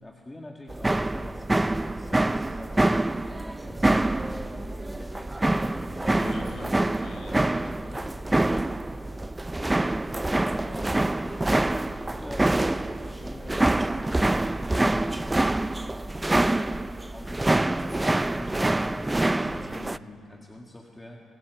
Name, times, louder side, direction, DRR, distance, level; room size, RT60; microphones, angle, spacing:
voice 1, 0.0-2.8 3.4-5.8 7.3-8.1 10.5-15.4 15.9-21.2, left 1 dB, 15° left, 0 dB, 1.8 m, -45 dB
sound 1, 0.7-20.0, right 2 dB, 15° right, 0.4 m, -26 dB
voice 2, 6.1-7.7 19.4-19.9, left 2 dB, 60° left, 4 dB, 4.3 m, -42 dB
27.0 x 16.5 x 8.0 m, 2.8 s
cardioid pair, 90°, 0 cm